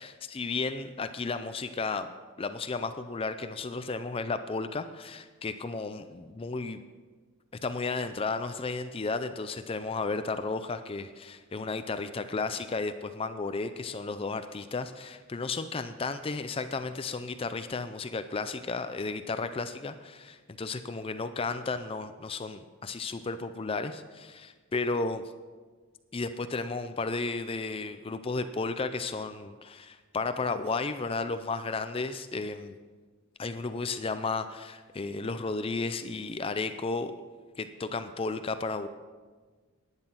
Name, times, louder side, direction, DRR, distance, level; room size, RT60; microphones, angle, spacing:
voice 1, 0.0-2.1 2.4-6.8 7.6-25.2 26.1-32.7 33.4-37.1 37.6-38.9, left 3 dB, 25° left, 10 dB, 0.4 m, -33 dB
11.5 x 9.8 x 5.8 m, 1.4 s
head